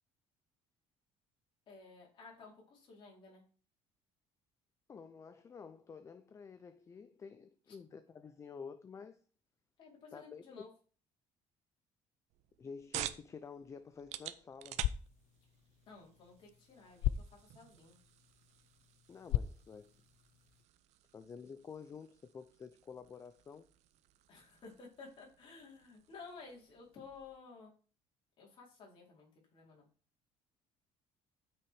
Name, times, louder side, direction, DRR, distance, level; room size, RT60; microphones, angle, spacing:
voice 1, 1.7-3.4 7.7-7.8 9.8-10.7 15.9-18.0 24.3-27.7 28.4-29.9, left 4 dB, 40° left, 4.4 m, -54 dB
voice 2, 4.9-9.2 10.1-10.4 12.6-14.9 19.1-19.9 21.1-23.7, left 6 dB, 25° left, 0.6 m, -50 dB
sound 1, 12.3-27.4, right 13 dB, 65° right, 0.8 m, -50 dB
sound 2, 14.6-20.6, left 13 dB, 65° left, 0.5 m, -40 dB
12.5 x 6.1 x 4.9 m
cardioid pair, 155°, 12 cm